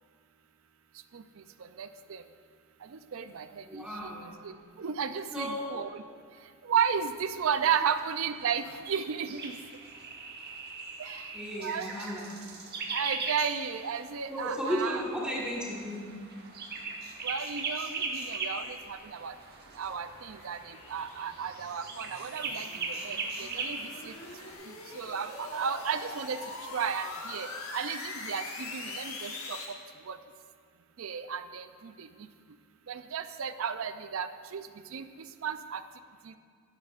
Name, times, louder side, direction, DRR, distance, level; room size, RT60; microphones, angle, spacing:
voice 1, 1.8-2.2 3.1-3.8 4.4-4.5 4.8-6.0 6.7-9.5 11.0-11.2 11.6-11.9 12.9-15.0 17.2-19.3 19.8-23.8 24.1-24.2 25.0-26.4 26.7-27.5 27.7-29.6 30.1-30.2 31.0-32.1 32.9-34.6 34.9-35.1 35.4-35.8 36.3-36.4, right 7 dB, 70° right, 11 dB, 0.4 m, -33 dB
voice 2, 3.6-4.3 5.3-5.8 7.8-7.9 11.3-12.4 14.3-16.3, equal, 5° right, -5 dB, 1.5 m, -35 dB
sound 1, 6.8-24.5, right 4 dB, 50° right, 1.1 m, -40 dB
sound 2, 18.5-29.7, left 3 dB, 80° left, 1.2 m, -43 dB
11.0 x 11.0 x 2.5 m, 2.1 s
head